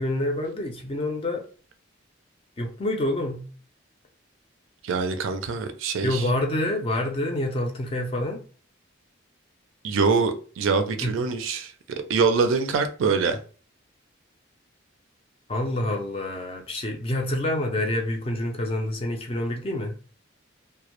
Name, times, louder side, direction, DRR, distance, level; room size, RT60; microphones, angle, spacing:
voice 1, 0.0-1.4 2.6-3.4 6.0-8.4 11.0-11.2 15.5-19.9, left 1 dB, 25° left, 0.4 m, -27 dB
voice 2, 4.8-6.2 9.8-13.4, right 4 dB, 75° right, 0.4 m, -24 dB
2.1 x 2.0 x 2.9 m
head